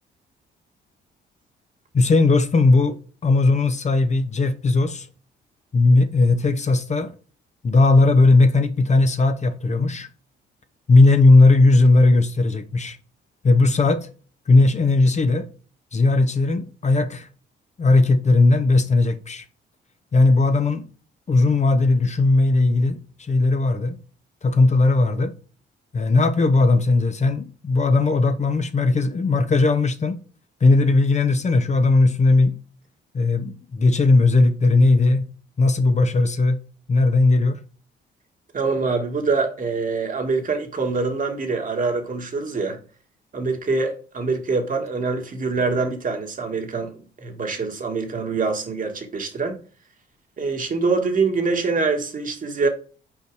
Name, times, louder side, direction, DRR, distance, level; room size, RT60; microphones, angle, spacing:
voice 1, 1.9-5.1 5.7-7.1 7.6-10.1 10.9-13.0 13.4-14.1 14.5-15.5 15.9-17.3 17.8-19.4 20.1-20.8 21.3-24.0 24.4-25.3 25.9-30.2 30.6-32.5 33.1-35.3 35.6-36.6 36.9-37.6, left 3 dB, 35° left, 0.9 m, -17 dB
voice 2, 38.5-42.8 43.3-46.9 47.2-49.6 50.4-52.7, right 4 dB, 40° right, 1.7 m, -24 dB
5.6 x 4.5 x 4.7 m
cardioid pair, 90°, 20 cm